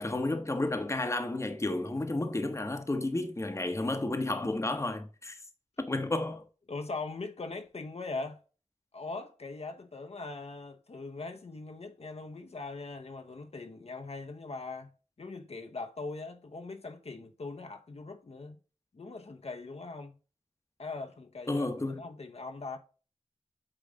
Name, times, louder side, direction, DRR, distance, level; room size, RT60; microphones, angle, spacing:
voice 1, 0.0-5.4 5.8-6.4 21.5-22.0, left 2 dB, 25° left, 0.9 m, -32 dB
voice 2, 6.7-8.4 8.9-14.9 15.2-18.6 18.9-20.1 20.8-21.7 22.0-22.8, left 3 dB, 55° left, 0.9 m, -41 dB
8.6 x 3.2 x 5.0 m
wide cardioid pair, 85°, 12 cm